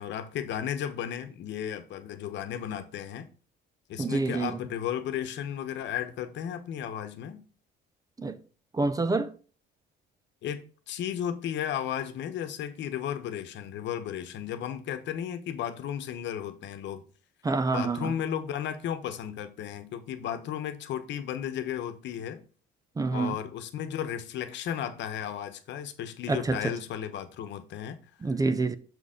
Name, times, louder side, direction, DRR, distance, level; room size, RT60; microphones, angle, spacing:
voice 1, 0.0-3.3 3.9-7.4 10.4-17.0 17.7-22.4 23.1-28.3, left 9 dB, 65° left, 1.1 m, -34 dB
voice 2, 4.0-4.6 8.2-8.4 8.7-9.3 17.4-18.1 23.0-23.4 26.3-26.7 28.2-28.8, right 3 dB, 20° right, 0.5 m, -27 dB
6.8 x 4.3 x 5.0 m
cardioid pair, 125°, 20 cm